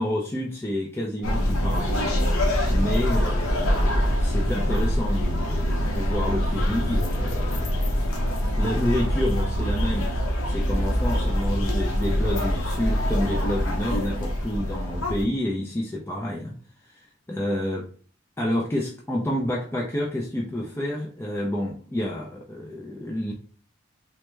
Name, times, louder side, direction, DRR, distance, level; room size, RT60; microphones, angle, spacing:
voice 1, 0.0-2.0 2.7-8.2 8.6-10.1 10.5-16.6 16.9-17.9 18.4-23.3, left 1 dB, 10° left, 0.3 m, -29 dB
sound 1, 1.2-15.2, equal, 85° left, 0.7 m, -24 dB
3.4 x 2.1 x 3.1 m
head